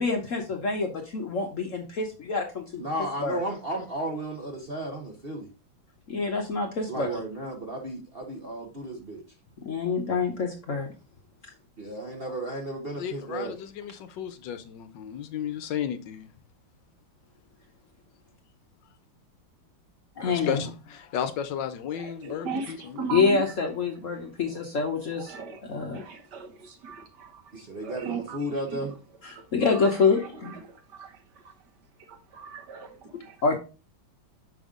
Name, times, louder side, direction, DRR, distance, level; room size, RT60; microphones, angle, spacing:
voice 1, 0.0-2.8 3.2-3.4 6.1-7.2 9.6-10.9 20.2-20.7 23.1-25.4 25.7-26.0 29.2-30.6 33.4-33.6, left 4 dB, 55° left, 0.9 m, -26 dB
voice 2, 2.8-5.5 6.9-9.2 11.8-13.5 27.5-28.9, right 1 dB, 40° right, 0.9 m, -34 dB
voice 3, 13.0-16.3 20.2-23.0, left 9 dB, 70° left, 1.3 m, -34 dB
voice 4, 21.9-23.5 24.5-24.6 24.9-28.8 29.3-31.5 32.1-33.4, right 4 dB, 60° right, 1.6 m, -39 dB
6.2 x 5.3 x 3.6 m
omnidirectional pair, 2.2 m